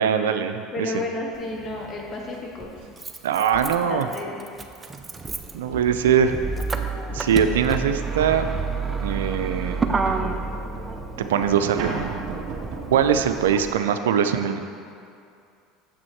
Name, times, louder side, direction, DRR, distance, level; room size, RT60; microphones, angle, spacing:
voice 1, 0.0-0.9 3.2-4.1 5.5-6.4 7.1-8.5 9.0-9.8 11.3-12.0 12.9-14.6, right 8 dB, 85° right, 8 dB, 0.4 m, -22 dB
voice 2, 0.7-2.7 3.8-4.4, left 2 dB, 35° left, -1 dB, 1.7 m, -32 dB
Motor vehicle (road), 1.3-1.4 2.6-13.7, right 4 dB, 20° right, 0.6 m, -30 dB
sound 1, 1.5-3.2 6.0-6.1 6.8-13.3, right 5 dB, 65° right, 1.4 m, -37 dB
7.1 x 6.1 x 4.5 m, 2.5 s
hypercardioid pair, 90°, 0 cm